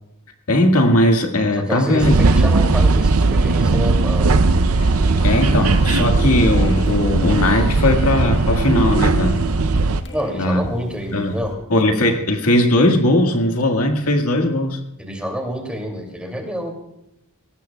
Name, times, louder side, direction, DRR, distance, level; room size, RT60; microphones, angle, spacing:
voice 1, 0.5-2.2 5.2-9.4 10.4-10.7 11.1-11.3 11.7-14.8, left 1 dB, 80° left, 4 dB, 1.9 m, -18 dB
voice 2, 1.6-4.4 10.1-11.6 15.0-16.7, equal, 5° right, 2 dB, 2.6 m, -27 dB
sound 1, 2.0-10.0, right 3 dB, 70° right, 0.6 m, -17 dB
sound 2, 4.8-11.6, left 1 dB, 50° left, 1.5 m, -36 dB
21.0 x 17.5 x 2.3 m, 0.86 s
head